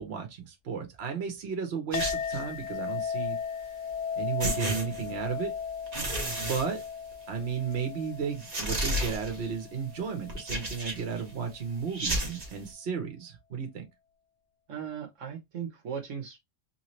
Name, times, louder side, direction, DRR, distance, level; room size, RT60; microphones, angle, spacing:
voice 1, 0.0-3.4 4.2-5.5 6.4-6.8 7.3-13.8, right 6 dB, 55° right, 1.2 m, -34 dB
Chink clink, 1.9-10.6, left 7 dB, 75° left, 0.9 m, -37 dB
sound 1, 1.9-2.5 3.9-4.0 4.4-5.4 5.9-7.4 7.7-7.8 8.4-9.5 10.3-11.2 11.9-12.6, right 1 dB, 35° right, 1.1 m, -32 dB
voice 2, 14.7-16.4, right 7 dB, 80° right, 1.3 m, -37 dB
3.2 x 2.9 x 3.1 m
omnidirectional pair, 1.3 m